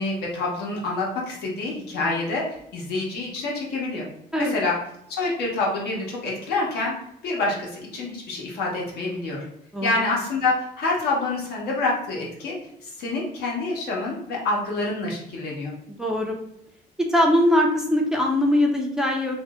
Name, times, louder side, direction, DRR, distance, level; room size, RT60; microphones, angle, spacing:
voice 1, 0.0-2.4 2.7-4.1 4.4-4.8 5.1-6.9 7.2-9.4 9.8-12.6 12.8-15.7, left 3 dB, 75° left, -3 dB, 1.0 m, -27 dB
voice 2, 16.0-16.3 17.1-19.4, left 1 dB, 5° right, 0 dB, 0.4 m, -21 dB
2.6 x 2.0 x 3.5 m, 0.76 s
cardioid pair, 110°, 17 cm